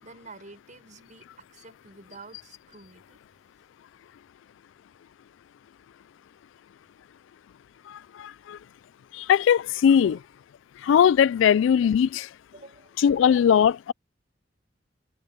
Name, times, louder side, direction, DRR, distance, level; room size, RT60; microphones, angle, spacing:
voice 1, 0.0-3.2 10.0-10.2 12.5-12.9, right 3 dB, 45° right, 6.1 m, -48 dB
voice 2, 7.9-8.6 9.1-10.2 10.8-12.3 13.0-13.9, left 8 dB, 85° left, 0.3 m, -20 dB
head